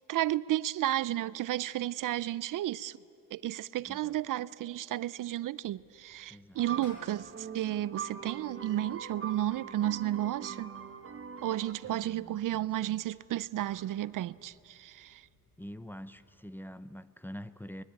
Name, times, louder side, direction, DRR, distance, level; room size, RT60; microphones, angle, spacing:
voice 1, 0.0-3.0 3.3-10.7 11.4-15.2, right 13 dB, 60° right, 0.5 m, -33 dB
voice 2, 3.8-4.2 6.3-6.6 11.8-13.2 15.6-17.8, equal, 5° left, 0.6 m, -46 dB
sound 1, 5.6-16.4, left 1 dB, 60° left, 7.7 m, -63 dB
sound 2, 6.5-11.7, right 6 dB, 40° right, 1.3 m, -42 dB
23.5 x 21.0 x 8.8 m
cardioid pair, 135°, 36 cm